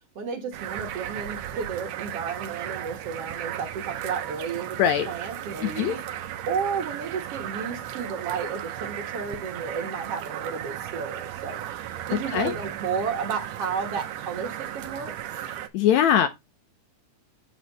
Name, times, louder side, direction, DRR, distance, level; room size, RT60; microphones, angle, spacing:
voice 1, 0.2-4.8 5.1-15.4, right 6 dB, 55° right, 2.1 m, -32 dB
sound 1, 0.5-15.7, right 11 dB, 70° right, 1.6 m, -35 dB
voice 2, 5.6-6.0 12.3-12.5 15.7-16.3, left 9 dB, 75° left, 1.8 m, -21 dB
8.1 x 5.4 x 4.0 m
omnidirectional pair, 3.7 m